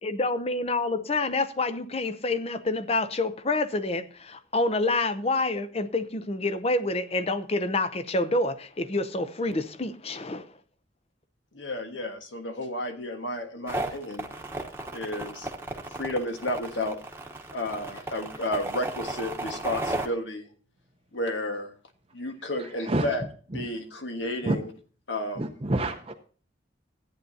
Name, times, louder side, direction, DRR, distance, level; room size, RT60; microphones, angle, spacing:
voice 1, 0.0-10.5, left 2 dB, 30° left, 0.7 m, -27 dB
voice 2, 11.5-14.3 14.9-15.5 16.0-17.0 17.5-20.5 21.1-21.7 22.1-23.2 23.5-24.6 25.1-25.4, left 1 dB, 75° left, 1.5 m, -32 dB
sound 1, 13.7-20.1, right 2 dB, 15° right, 1.1 m, -34 dB
voice 3, 22.6-23.1 23.5-23.7 24.4-24.6 25.3-26.1, right 1 dB, 30° right, 0.7 m, -28 dB
14.0 x 9.3 x 2.8 m
head